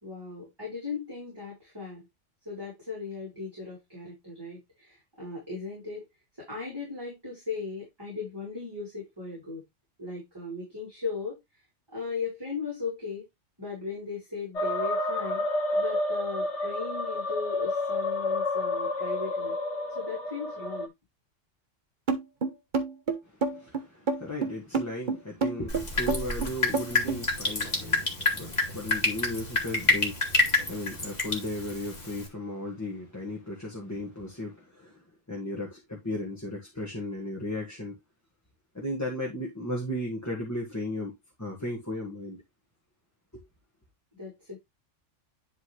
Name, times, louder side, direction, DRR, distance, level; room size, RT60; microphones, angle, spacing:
voice 1, 0.0-2.1 2.4-6.0 6.4-9.6 10.0-11.4 11.9-13.3 13.6-15.4 15.7-19.5 19.9-20.9 44.2-44.6, left 4 dB, 20° right, 4.4 m, -37 dB
sound 1, 14.6-20.9, left 2 dB, 65° left, 1.6 m, -30 dB
sound 2, 22.1-27.2, right 4 dB, 40° right, 1.3 m, -28 dB
voice 2, 23.2-35.0 35.3-38.0 38.7-41.1 41.4-42.4 43.3-43.4, left 1 dB, 15° left, 1.7 m, -36 dB
Drip, 25.7-32.3, left 3 dB, 35° left, 2.1 m, -28 dB
10.5 x 4.0 x 3.3 m
omnidirectional pair, 1.3 m